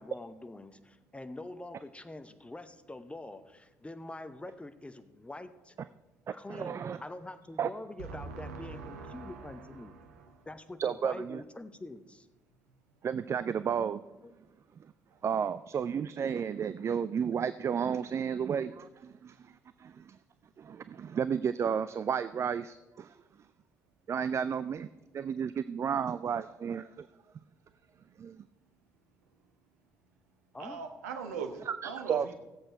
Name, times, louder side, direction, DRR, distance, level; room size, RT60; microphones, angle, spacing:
voice 1, 0.0-5.7 6.3-10.0 10.5-12.3 14.2-14.3 30.5-30.8, left 2 dB, 15° left, 11 dB, 0.8 m, -45 dB
voice 2, 6.3-7.0 7.6-7.7 10.8-11.4 13.0-14.1 15.2-20.2 20.6-23.2 24.1-24.9 25.1-27.1 28.2-28.4 31.7-32.4, right 7 dB, 35° right, 14 dB, 0.4 m, -32 dB
voice 3, 8.0-10.5 30.6-32.4, right 5 dB, 70° right, 5 dB, 1.1 m, -41 dB
16.5 x 7.7 x 4.5 m, 1.1 s
figure-of-eight pair, 50°, 9 cm